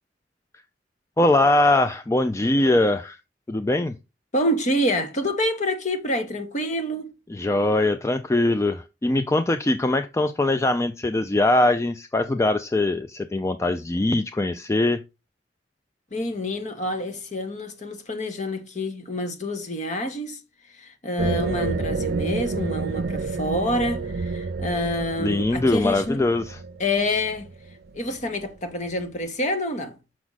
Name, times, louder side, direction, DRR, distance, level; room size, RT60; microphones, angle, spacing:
voice 1, 1.2-3.2 3.5-4.0 7.3-15.0 25.2-26.6, left 2 dB, 15° left, 0.4 m, -22 dB
voice 2, 4.3-7.1 16.1-20.4 20.7-26.2 26.8-27.5 27.9-30.0, left 1 dB, 40° left, 1.3 m, -27 dB
sound 1, 21.2-28.5, right 3 dB, 55° right, 0.6 m, -29 dB
6.1 x 6.0 x 4.0 m
head